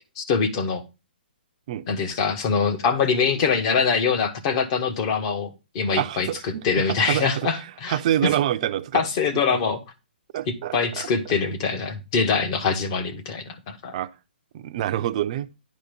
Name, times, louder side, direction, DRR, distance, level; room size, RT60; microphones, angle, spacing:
voice 1, 0.2-0.8 1.9-8.3 8.9-9.8 10.5-13.9, left 5 dB, 30° left, 1.3 m, -24 dB
voice 2, 5.9-7.5 7.9-9.0 9.5-9.6 10.3-11.1 13.9-14.1 14.5-15.5, right 12 dB, 35° right, 0.6 m, -26 dB
10.5 x 4.1 x 5.2 m
hypercardioid pair, 160°, 6 cm